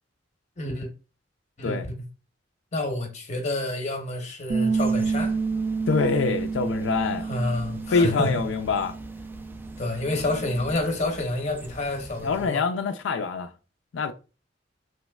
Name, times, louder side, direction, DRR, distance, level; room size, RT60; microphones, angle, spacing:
voice 1, 0.6-0.9 1.6-1.8 2.7-5.4 7.3-8.3 9.8-12.6, left 1 dB, 40° left, 0.8 m, -28 dB
Bass guitar, 4.5-10.7, right 4 dB, 80° right, 0.4 m, -29 dB
sound 1, 4.7-12.5, equal, 10° right, 0.3 m, -44 dB
voice 2, 5.9-7.3 7.9-9.0 12.2-13.5 13.9-14.1, left 4 dB, 90° left, 0.4 m, -25 dB
3.2 x 3.0 x 2.2 m
head